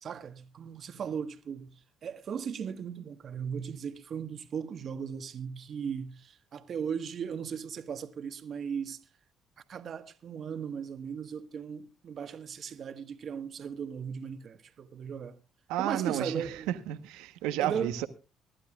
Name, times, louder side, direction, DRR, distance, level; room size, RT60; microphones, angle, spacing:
voice 1, 0.0-1.7 2.0-9.0 9.7-15.4 15.8-16.7 17.6-17.9, right 7 dB, 55° right, 1.5 m, -37 dB
voice 2, 15.7-18.1, right 12 dB, 80° right, 1.1 m, -32 dB
24.5 x 11.5 x 2.4 m
supercardioid pair, 60°, 0 cm